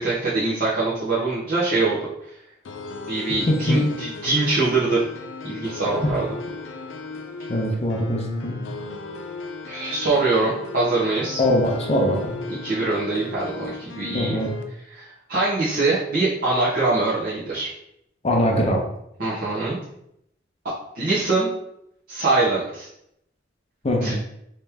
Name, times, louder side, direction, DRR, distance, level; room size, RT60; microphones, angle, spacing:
voice 1, 0.0-2.0 2.2-2.4 3.1-5.0 5.4-6.3 9.7-11.4 12.6-14.4 14.9-17.7 19.2-19.8 20.9-21.5 22.1-22.9 24.0-24.1, right 3 dB, 50° right, -11 dB, 1.1 m, -23 dB
sound 1, 2.7-14.6, left 3 dB, 75° left, 0.5 m, -36 dB
voice 2, 3.5-3.9 7.5-8.6 11.4-12.3 14.1-14.5 18.2-18.8 23.8-24.1, equal, 35° left, 0 dB, 0.6 m, -21 dB
3.2 x 2.9 x 3.4 m, 0.76 s
head